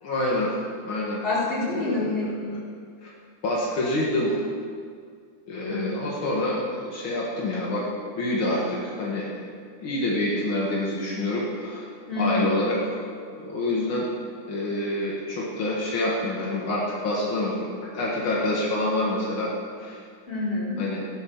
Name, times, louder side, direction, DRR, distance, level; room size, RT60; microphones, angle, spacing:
voice 1, 0.0-0.5 0.8-1.2 1.7-2.3 3.0-3.1 3.4-4.3 5.5-7.9 8.2-9.3 9.8-11.9 12.2-12.8 13.3-14.1 14.5-19.5 19.8-20.0 20.8-21.0, left 1 dB, 75° left, -5 dB, 2.6 m, -27 dB
voice 2, 1.2-2.6 5.7-6.1 12.1-12.5 20.3-20.8, left 2 dB, 25° left, -10 dB, 4.9 m, -27 dB
16.5 x 11.5 x 4.7 m, 2.2 s
omnidirectional pair, 2.2 m